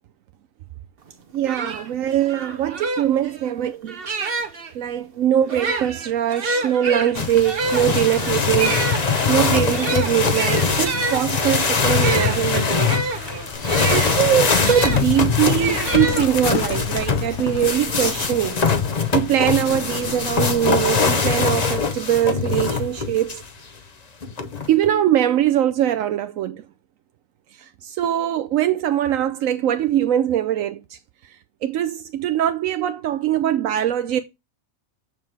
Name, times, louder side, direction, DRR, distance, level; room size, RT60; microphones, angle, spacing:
sound 1, 1.1-1.2 1.5-4.7 5.4-15.0 15.6-16.7, right 3 dB, 45° right, 1.2 m, -28 dB
voice 1, 1.3-4.2 4.7-8.8 9.3-13.0 13.9-18.6 19.1-23.4 24.7-26.6 27.6-31.0 31.6-34.2, right 11 dB, 85° right, 1.1 m, -22 dB
sound 2, 7.1-23.5 24.2-24.9, left 5 dB, 35° left, 0.9 m, -22 dB
Livestock farm animals working animals, 13.5-20.9, left 8 dB, 60° left, 1.0 m, -33 dB
7.3 x 6.6 x 3.3 m
omnidirectional pair, 1.4 m